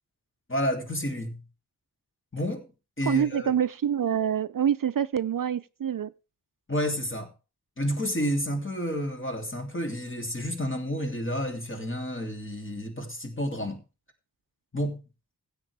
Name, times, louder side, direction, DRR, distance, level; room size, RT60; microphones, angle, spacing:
voice 1, 0.5-1.4 2.3-2.7 3.0-3.5 6.7-7.3 7.8-13.8 14.7-15.0, equal, 30° left, 2.8 m, -30 dB
voice 2, 3.1-6.1, right 9 dB, 60° right, 0.5 m, -26 dB
16.0 x 8.1 x 3.4 m
wide cardioid pair, 85°, 39 cm